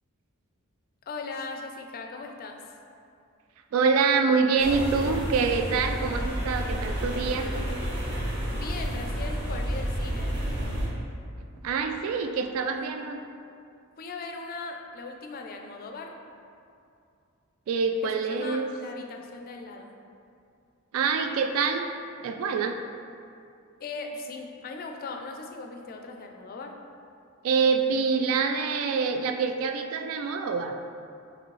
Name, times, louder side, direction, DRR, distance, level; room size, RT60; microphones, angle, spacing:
voice 1, 1.1-2.6 8.5-10.4 12.8-12.9 14.0-16.1 18.0-19.9 23.8-26.7, left 3 dB, 45° left, 3 dB, 0.4 m, -39 dB
voice 2, 3.7-7.5 11.6-13.2 17.7-18.7 20.9-21.8 22.2-22.8 27.4-30.8, right 5 dB, 70° right, 6 dB, 0.3 m, -25 dB
sound 1, 4.6-10.9, equal, 50° right, 1.0 m, -30 dB
5.0 x 3.0 x 3.1 m, 2.5 s
head